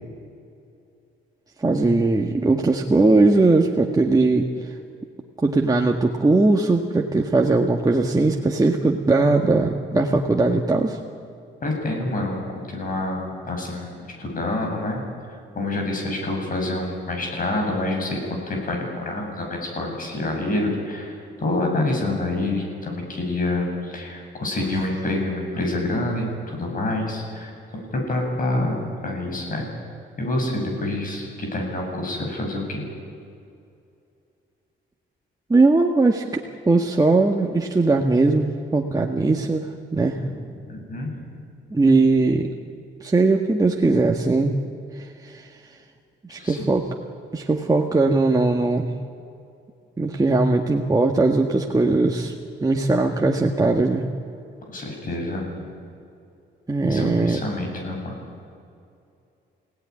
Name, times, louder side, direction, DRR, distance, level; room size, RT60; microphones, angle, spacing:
voice 1, 1.6-4.7 5.4-11.0 35.5-40.2 41.7-42.5 43.0-44.6 44.9-45.5 46.3-46.9 47.3-48.9 50.0-52.3 52.6-54.0 56.7-57.4, right 3 dB, 20° right, 1 dB, 1.7 m, -20 dB
voice 2, 11.6-15.0 15.3-18.2 18.5-29.7 30.2-32.9 40.1-41.3 46.4-46.6 54.7-55.7 56.9-58.1, left 2 dB, 45° left, 1 dB, 7.9 m, -27 dB
28.0 x 17.5 x 10.0 m, 2.5 s
cardioid pair, 90°, 20 cm